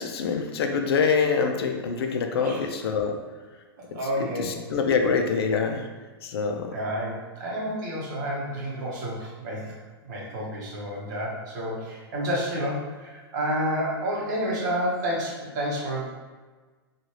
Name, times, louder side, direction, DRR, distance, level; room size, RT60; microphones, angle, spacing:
voice 1, 0.0-3.2 4.4-5.8 6.2-6.7, left 5 dB, 75° left, 5 dB, 0.4 m, -25 dB
voice 2, 3.9-4.5 6.7-9.7 10.1-16.1, equal, 45° right, -4 dB, 0.9 m, -30 dB
3.1 x 2.3 x 2.7 m, 1.4 s
supercardioid pair, 170°, 13 cm